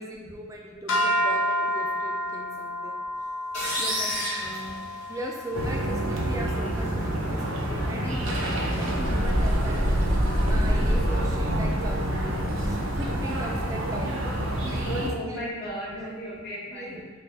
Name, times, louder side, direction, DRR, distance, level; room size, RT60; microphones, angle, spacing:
voice 1, 0.0-2.9 3.8-4.1 5.1-9.8 10.5-12.1 12.6-14.2 14.6-16.2 16.7-17.1, right 1 dB, 15° right, -1 dB, 0.3 m, -38 dB
sound 1, 0.9-7.2, equal, 90° left, 0.7 m, -30 dB
sound 2, 3.5-5.5, equal, 40° left, 1.4 m, -31 dB
voice 2, 4.1-4.8 14.4-17.0, equal, 55° left, -10 dB, 1.0 m, -36 dB
sound 3, 5.5-15.1, equal, 75° right, 0.6 m, -26 dB
3.2 x 2.3 x 3.4 m, 1.3 s
head